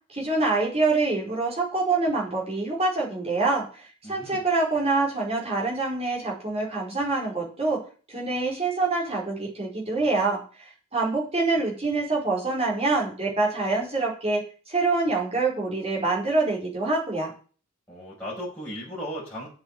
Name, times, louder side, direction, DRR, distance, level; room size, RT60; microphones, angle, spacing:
voice 1, 0.1-7.8 8.1-17.3, right 3 dB, 25° right, -2 dB, 4.8 m, -26 dB
voice 2, 4.0-4.4 17.9-19.5, equal, 5° left, -8 dB, 5.6 m, -36 dB
8.1 x 8.0 x 8.4 m, 0.38 s
head